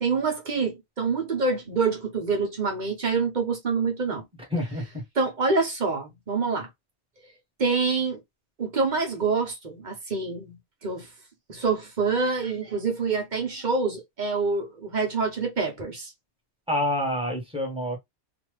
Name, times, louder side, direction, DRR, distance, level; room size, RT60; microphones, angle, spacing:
voice 1, 0.0-4.2 5.2-6.7 7.6-8.2 8.6-11.1 11.5-16.1, right 4 dB, 45° right, 1.0 m, -26 dB
voice 2, 4.5-4.8 16.7-18.0, left 1 dB, 5° right, 1.3 m, -27 dB
2.8 x 2.5 x 3.1 m
omnidirectional pair, 1.2 m